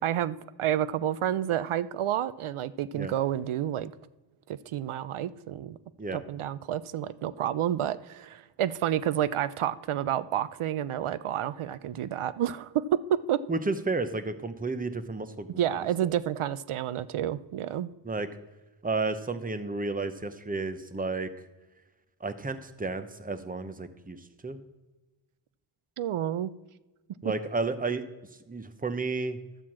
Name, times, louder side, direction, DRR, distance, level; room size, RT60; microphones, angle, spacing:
voice 1, 0.0-3.9 4.7-5.8 6.1-12.8 13.3-13.4 15.6-17.9 26.0-26.5, right 11 dB, 80° right, 15 dB, 0.6 m, -30 dB
voice 2, 13.5-16.1 18.0-18.3 18.8-21.3 22.2-24.6 27.2-28.0 28.5-29.4, right 3 dB, 15° right, 10 dB, 0.8 m, -32 dB
12.5 x 4.5 x 7.4 m, 1.1 s
wide cardioid pair, 75°, 49 cm